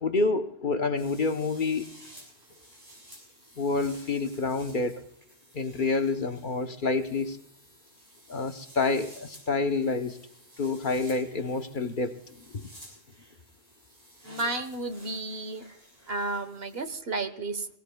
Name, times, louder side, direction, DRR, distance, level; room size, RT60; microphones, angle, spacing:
voice 1, 0.0-1.9 3.6-5.0 5.5-7.4 8.3-10.2 10.6-12.2 12.5-12.7, left 3 dB, 50° left, 7 dB, 1.0 m, -28 dB
sound 1, 1.0-17.0, equal, 35° right, 6.5 m, -53 dB
voice 2, 14.2-15.7 16.1-17.7, right 2 dB, 60° right, 9 dB, 1.3 m, -32 dB
23.0 x 18.0 x 2.3 m, 0.74 s
omnidirectional pair, 1.1 m